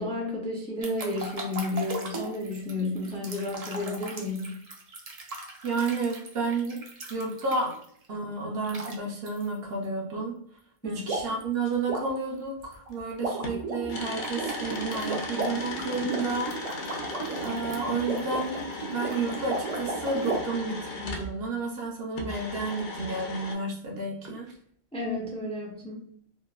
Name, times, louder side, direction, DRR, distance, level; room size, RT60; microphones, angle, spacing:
voice 1, 0.0-4.6 10.8-11.0 24.9-26.1, left 2 dB, 10° left, -3 dB, 0.3 m, -32 dB
sound 1, 0.8-7.8 8.6-8.9 9.3-9.4 11.1-11.4 11.7-20.4, right 3 dB, 50° right, 0.5 m, -35 dB
voice 2, 5.6-6.8 7.1-7.8 8.1-10.3 10.8-16.5 17.4-18.6 18.9-24.5, right 3 dB, 70° right, -1 dB, 0.9 m, -31 dB
sound 2, 12.9-13.0 13.4-21.3 22.1-23.5, left 2 dB, 60° left, 0.6 m, -37 dB
2.9 x 2.1 x 2.3 m, 0.64 s
omnidirectional pair, 1.1 m